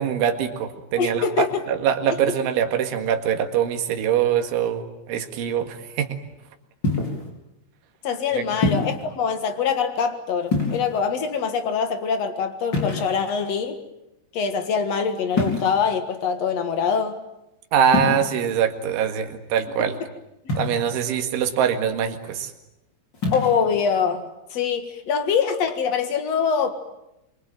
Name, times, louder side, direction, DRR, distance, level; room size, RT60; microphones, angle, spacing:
voice 1, 0.0-6.2 8.3-8.4 17.7-20.0 20.6-22.5, right 8 dB, 80° right, 6 dB, 4.3 m, -23 dB
voice 2, 1.0-1.6 2.1-2.2 8.0-13.8 14.3-17.2 19.8-19.9 23.3-24.2 24.5-26.7, left 6 dB, 65° left, 8 dB, 1.6 m, -24 dB
sound 1, 6.8-7.3 8.6-9.0 10.4-11.1 12.7-13.4 15.3-15.9 17.9-18.2 20.5-21.0 23.1-23.5, left 3 dB, 25° left, 5.0 m, -25 dB
27.0 x 24.0 x 9.2 m, 0.88 s
omnidirectional pair, 5.6 m